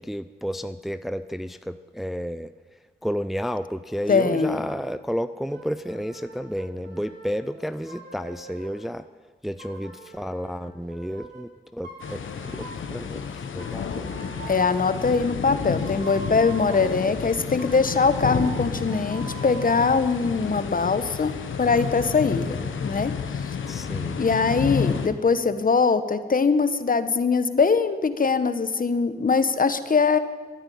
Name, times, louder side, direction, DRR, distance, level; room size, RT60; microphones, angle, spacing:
voice 1, 0.0-2.5 3.0-9.1 9.4-13.2 13.5-14.1 22.5-22.7 23.7-24.2, equal, ahead, 12 dB, 0.5 m, -31 dB
sound 1, 3.9-4.9 5.5-8.9 9.6-11.5 11.8-12.9 13.6-16.9 17.6-19.8, right 3 dB, 60° right, 4.1 m, -44 dB
voice 2, 4.1-4.6 14.5-21.3 21.6-23.1 24.2-30.2, left 4 dB, 45° left, 11 dB, 1.1 m, -22 dB
sound 2, 12.0-25.1, left 6 dB, 75° left, 1.2 m, -31 dB
13.0 x 9.5 x 8.7 m, 1.4 s
supercardioid pair, 45°, 21 cm